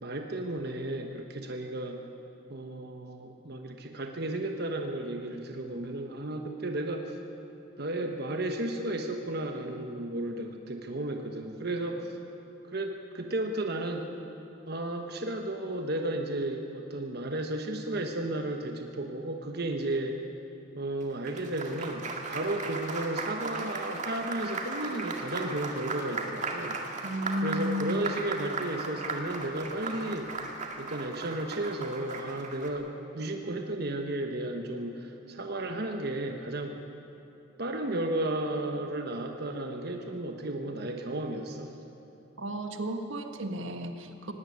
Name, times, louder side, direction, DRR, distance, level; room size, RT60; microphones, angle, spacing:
voice 1, 0.0-2.0 2.5-7.2 7.8-12.2 12.7-14.1 14.7-20.2 20.7-26.8 27.4-30.4 30.8-36.8 37.6-41.7, right 1 dB, 55° right, 4 dB, 1.2 m, -33 dB
Applause, 21.0-32.7, right 3 dB, 40° right, 2.1 m, -37 dB
voice 2, 27.0-28.0 42.4-44.3, equal, 85° right, 6 dB, 1.6 m, -33 dB
17.5 x 17.5 x 9.8 m, 3.0 s
head